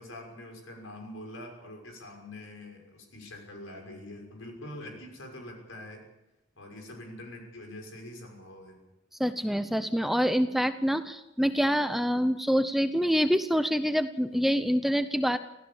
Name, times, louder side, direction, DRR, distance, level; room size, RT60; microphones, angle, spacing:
voice 1, 0.0-6.1 6.6-8.8, left 1 dB, 90° left, 3 dB, 6.2 m, -44 dB
voice 2, 9.2-15.4, equal, ahead, 10 dB, 0.7 m, -26 dB
25.5 x 16.0 x 7.2 m, 0.92 s
head